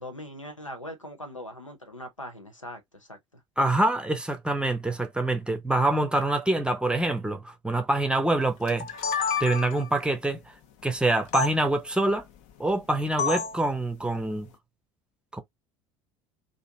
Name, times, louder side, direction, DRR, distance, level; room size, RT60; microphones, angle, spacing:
voice 1, 0.0-3.4, left 1 dB, 90° left, 0.7 m, -41 dB
voice 2, 3.6-8.9 9.4-10.4 10.8-12.2 12.6-14.5 15.3-15.4, right 2 dB, 5° right, 0.7 m, -25 dB
sound 1, 8.7-9.9 11.3-11.5 13.2-13.6, left 6 dB, 50° left, 0.6 m, -28 dB
3.0 x 2.5 x 2.7 m
figure-of-eight pair, 65°, 16 cm